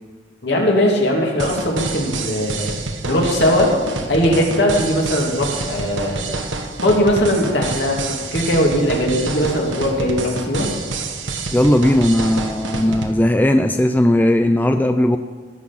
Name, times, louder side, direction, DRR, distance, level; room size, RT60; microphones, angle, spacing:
voice 1, 0.4-2.8 3.1-3.7 4.1-6.2 6.8-10.7, equal, 65° left, -1 dB, 2.7 m, -19 dB
sound 1, 1.4-13.1, right 3 dB, 90° right, 1.2 m, -28 dB
voice 2, 11.5-15.2, left 1 dB, 10° left, 7 dB, 0.3 m, -16 dB
17.5 x 6.1 x 7.2 m, 1.5 s
head